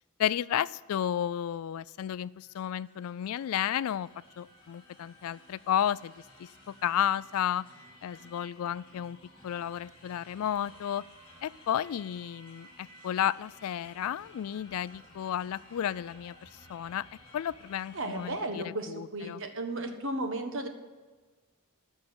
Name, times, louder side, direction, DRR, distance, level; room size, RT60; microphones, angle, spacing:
voice 1, 0.2-4.1 4.4-6.1 6.4-7.7 8.0-9.2 9.4-11.0 11.4-17.0 17.3-19.4, left 10 dB, 70° left, 20 dB, 0.3 m, -32 dB
sound 1, 1.9-18.4, left 1 dB, 25° left, 3.8 m, -56 dB
voice 2, 17.9-20.7, right 2 dB, 60° right, 6 dB, 1.4 m, -34 dB
12.5 x 6.6 x 8.6 m, 1.4 s
head